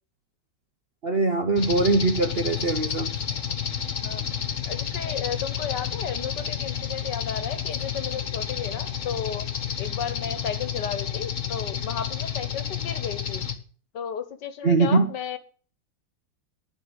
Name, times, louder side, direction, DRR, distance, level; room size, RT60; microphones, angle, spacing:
voice 1, 1.0-3.1 14.6-15.1, right 3 dB, 55° right, 7 dB, 0.6 m, -22 dB
sound 1, 1.6-13.5, left 8 dB, 45° left, 1.5 m, -30 dB
voice 2, 4.7-9.5 9.8-13.5 13.9-15.4, left 7 dB, 70° left, 11 dB, 1.8 m, -33 dB
10.5 x 5.7 x 8.2 m, 0.42 s
omnidirectional pair, 2.0 m